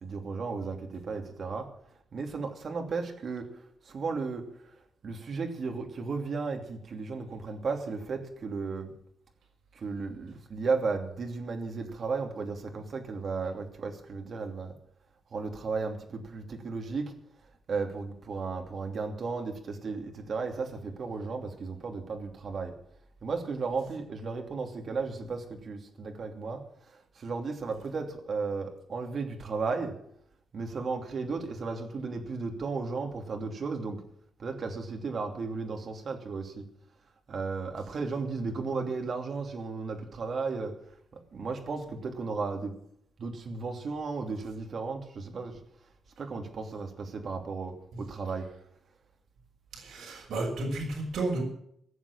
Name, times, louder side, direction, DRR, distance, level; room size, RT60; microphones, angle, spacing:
voice 1, 0.0-1.7 2.1-3.5 3.9-4.5 5.0-8.9 9.7-14.7 15.3-17.1 17.7-22.7 23.2-26.6 27.2-29.9 30.5-34.0 34.4-36.6 37.3-40.7 41.3-42.7 43.2-45.6 46.2-48.5, right 4 dB, 45° right, 4 dB, 2.9 m, -34 dB
voice 2, 49.7-51.4, right 2 dB, 75° right, -1 dB, 6.1 m, -32 dB
17.5 x 7.5 x 8.7 m, 0.68 s
cardioid pair, 145°, 0 cm